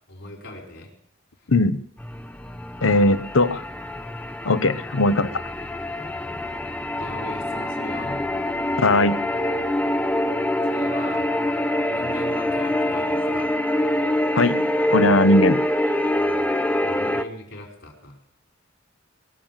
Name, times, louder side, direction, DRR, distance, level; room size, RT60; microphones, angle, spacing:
voice 1, 0.1-0.9 1.4-1.5 6.9-8.2 10.7-11.3 11.8-13.5 16.8-18.2, left 2 dB, 70° left, 2 dB, 5.1 m, -39 dB
sound 1, 2.0-17.2, left 1 dB, 5° left, 0.7 m, -25 dB
voice 2, 2.8-3.6 4.4-5.3 8.8-9.2 14.3-15.6, left 2 dB, 85° left, 13 dB, 1.0 m, -19 dB
22.0 x 7.3 x 7.5 m, 0.72 s
head